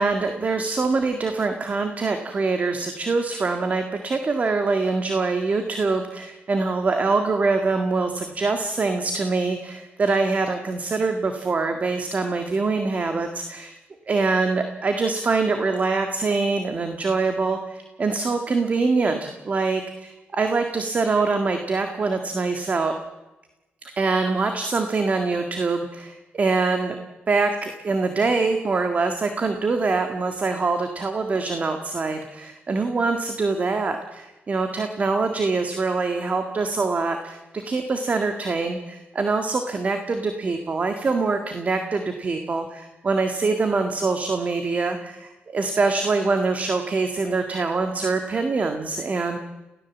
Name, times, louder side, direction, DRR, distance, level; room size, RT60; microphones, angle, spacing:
voice 1, 0.0-13.7 14.1-22.9 23.8-27.0 27.3-49.4, right 3 dB, 40° right, 6 dB, 1.8 m, -24 dB
28.5 x 16.5 x 7.4 m, 1.1 s
cardioid pair, 105°, 4 cm